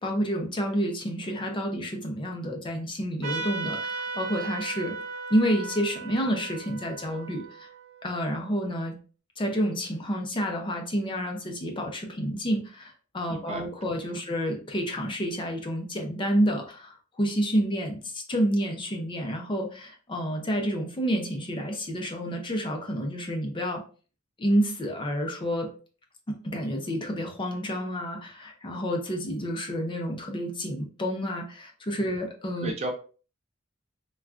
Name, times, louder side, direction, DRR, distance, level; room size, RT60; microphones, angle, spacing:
voice 1, 0.0-5.0 5.3-7.7 8.0-9.0 9.4-23.8 24.4-25.7 26.3-32.7, equal, 25° left, 3 dB, 0.5 m, -29 dB
Trumpet, 3.2-8.3, right 4 dB, 65° right, 1.0 m, -37 dB
voice 2, 13.3-13.6 32.6-32.9, right 1 dB, 30° right, 3 dB, 0.6 m, -32 dB
3.5 x 2.3 x 2.3 m, 0.38 s
head